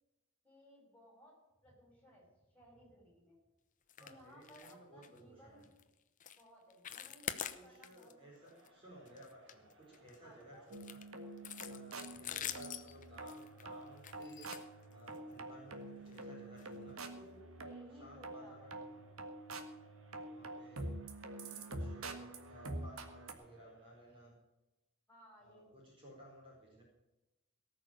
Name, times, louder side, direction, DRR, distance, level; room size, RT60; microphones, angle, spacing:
voice 1, 0.4-2.3 2.5-3.3 4.0-5.7 6.3-8.7 10.2-10.7 12.5-13.0 17.5-18.9 25.1-25.9, equal, 5° left, -2 dB, 6.2 m, -61 dB
sound 1, 3.9-4.1 4.4-4.7 5.0-5.2 5.6-5.8 6.2-6.4 6.7-8.1 8.5-8.7 9.1-10.2 10.7-15.3 16.1-16.2 16.6-16.7 17.1-17.2, left 9 dB, 35° left, 0.8 m, -45 dB
voice 2, 4.0-5.7 7.5-11.0 11.6-14.5 14.9-17.5 18.0-19.0 20.2-21.0 21.3-24.3 25.4-26.8, right 1 dB, 25° right, -4 dB, 4.5 m, -57 dB
Crowd, 8.1-24.3, right 1 dB, 65° right, 2.4 m, -67 dB
sound 2, 10.7-23.3, right 2 dB, 85° right, 1.7 m, -47 dB
18.5 x 6.4 x 9.0 m, 1.0 s
head